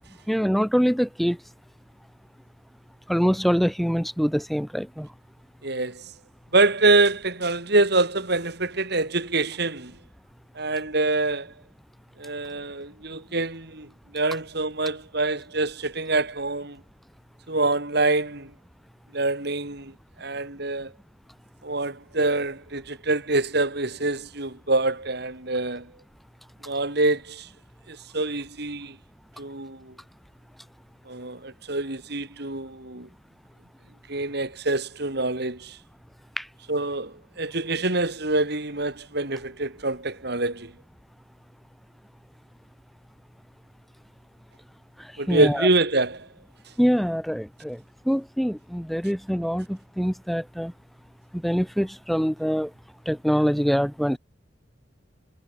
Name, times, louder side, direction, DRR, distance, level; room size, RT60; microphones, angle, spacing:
voice 1, 0.3-1.4 3.1-5.1 36.4-36.5 45.0-45.7 46.8-50.7 51.3-52.7 53.1-54.2, equal, ahead, 2.3 m, -24 dB
voice 2, 5.6-6.0 6.5-9.9 10.6-11.5 12.2-16.8 17.5-18.5 19.1-19.9 20.2-20.9 21.6-25.9 26.7-27.5 27.9-29.0 29.4-29.9 31.1-33.1 34.1-35.8 36.7-40.7 45.2-46.3, right 2 dB, 60° right, 4.0 m, -25 dB
head